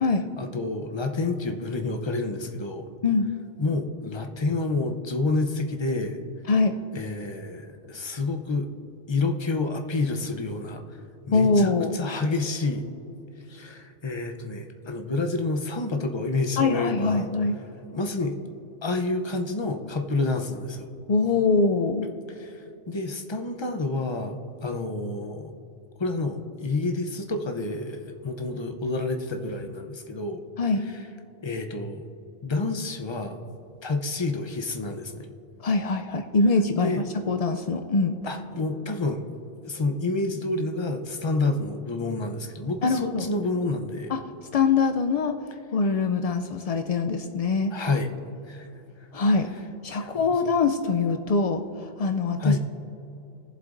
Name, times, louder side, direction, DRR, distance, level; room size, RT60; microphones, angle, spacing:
voice 1, 0.4-2.9 3.6-6.2 6.9-8.7 9.1-11.0 11.3-12.9 13.5-17.3 17.9-18.3 18.8-20.9 22.4-25.5 26.0-30.4 30.9-31.0 31.4-32.1 32.4-33.4 33.8-35.3 36.7-37.0 38.3-39.3 39.6-44.1 47.7-48.1 48.5-48.7 49.0-49.1 50.0-50.3 52.4-52.6, left 3 dB, 30° left, 5 dB, 0.6 m, -29 dB
voice 2, 11.3-12.0 16.6-17.6 21.1-22.1 30.6-30.9 35.6-38.2 42.8-43.3 44.1-44.2 44.5-45.4 45.7-47.7 49.1-49.5 49.8-52.6, left 4 dB, 75° left, 6 dB, 0.3 m, -23 dB
20.0 x 7.5 x 2.5 m, 3.0 s
omnidirectional pair, 1.2 m